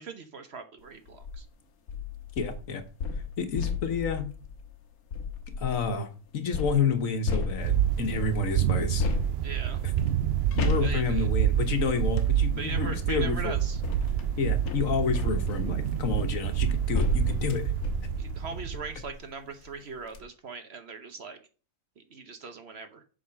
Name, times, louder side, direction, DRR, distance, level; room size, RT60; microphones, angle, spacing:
voice 1, 0.0-1.5 9.4-9.8 10.8-11.3 12.6-13.8 18.2-21.4 22.0-23.0, right 4 dB, 50° right, 8 dB, 1.0 m, -40 dB
sound 1, 1.1-1.4 1.9-5.9 6.5-8.1 9.0-12.4 13.3-19.2 19.7-19.8 20.0-20.2, left 4 dB, 80° left, 1.5 m, -34 dB
voice 2, 2.4-2.8 3.4-4.3 5.6-6.1 6.3-9.1 10.6-13.5 14.4-17.7, left 5 dB, 65° left, 7 dB, 1.4 m, -29 dB
sound 2, 7.6-18.9, right 10 dB, 70° right, 0.6 m, -28 dB
7.6 x 3.8 x 5.7 m, 0.37 s
omnidirectional pair, 1.5 m